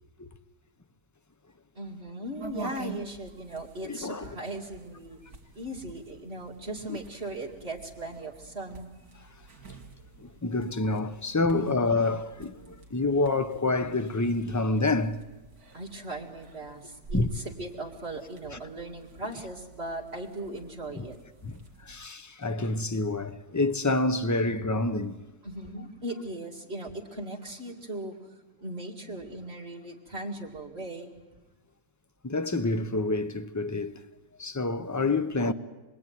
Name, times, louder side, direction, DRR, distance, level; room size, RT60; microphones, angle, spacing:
voice 1, 1.7-5.2 5.5-8.9 11.4-11.8 15.7-21.2 25.4-28.1 28.6-31.1, right 1 dB, 35° right, 2.5 m, -38 dB
sound 1, 2.4-22.1, right 4 dB, 60° right, 2.6 m, -47 dB
voice 2, 3.8-4.3 6.9-7.0 10.2-15.2 17.1-17.3 21.4-25.2 32.2-34.0 34.4-35.5, left 2 dB, 20° left, 0.5 m, -28 dB
27.0 x 22.0 x 9.4 m
omnidirectional pair, 1.8 m